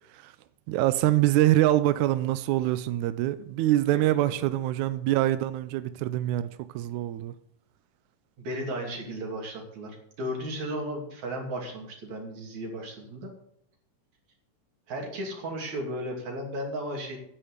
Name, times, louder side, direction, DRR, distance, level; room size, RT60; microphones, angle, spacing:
voice 1, 0.7-7.4, right 14 dB, 80° right, 1.8 m, -25 dB
voice 2, 8.4-13.3 14.9-17.2, equal, 55° right, 3.9 m, -35 dB
10.0 x 8.0 x 8.1 m
omnidirectional pair, 3.9 m